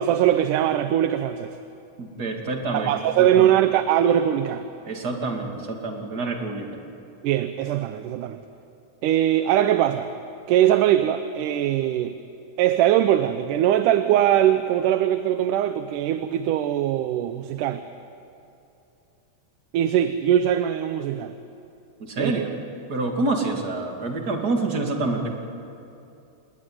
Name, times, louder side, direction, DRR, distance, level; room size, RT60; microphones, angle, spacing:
voice 1, 0.0-1.6 2.7-4.7 7.2-8.4 9.0-10.1 10.5-12.2 12.6-17.8 19.7-21.4 22.2-22.4, right 11 dB, 85° right, 10 dB, 2.4 m, -21 dB
voice 2, 2.0-2.9 3.2-3.5 4.9-6.7 22.0-22.5 22.9-25.3, right 3 dB, 30° right, 2 dB, 2.6 m, -27 dB
28.5 x 20.0 x 9.5 m, 2.7 s
omnidirectional pair, 3.6 m